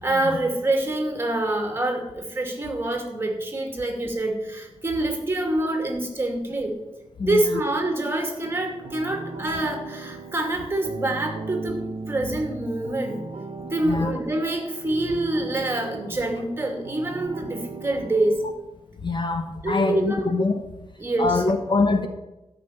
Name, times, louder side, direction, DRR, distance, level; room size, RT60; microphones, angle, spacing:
voice 1, 0.0-6.8 7.2-11.8 12.1-13.2 13.6-18.4 19.6-20.3 21.0-21.4, right 2 dB, 20° right, 2 dB, 2.5 m, -26 dB
voice 2, 7.2-7.6 13.8-14.1 19.0-20.6 21.2-22.1, left 3 dB, 45° left, 6 dB, 1.1 m, -24 dB
sound 1, 8.4-18.5, right 4 dB, 65° right, 1.2 m, -38 dB
13.0 x 6.0 x 9.2 m, 0.98 s
wide cardioid pair, 170°, 11 cm